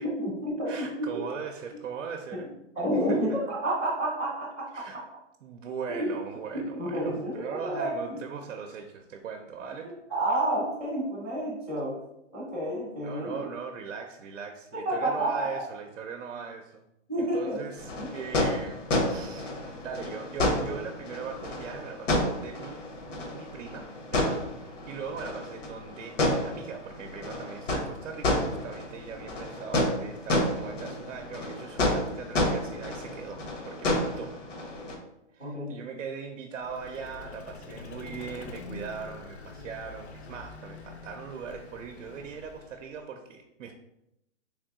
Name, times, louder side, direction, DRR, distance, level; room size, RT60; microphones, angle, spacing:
voice 1, 0.0-1.2 2.3-2.4 2.8-5.0 5.9-6.1 6.5-8.2 9.8-11.9 12.3-13.4 14.7-15.6 17.1-17.6 18.0-18.1 35.4-35.8, right 1 dB, 5° left, -11 dB, 0.4 m, -30 dB
voice 2, 0.7-2.5 2.9-3.4 4.7-5.0 5.4-9.9 12.9-16.8 17.2-22.8 23.1-34.3 35.3-43.7, right 6 dB, 80° right, 4 dB, 0.6 m, -40 dB
sound 1, 17.8-35.0, left 1 dB, 80° left, 1.2 m, -30 dB
Vehicle, 36.6-43.0, left 4 dB, 60° left, 0.6 m, -45 dB
3.4 x 2.8 x 3.5 m, 0.85 s
hypercardioid pair, 160°, 37 cm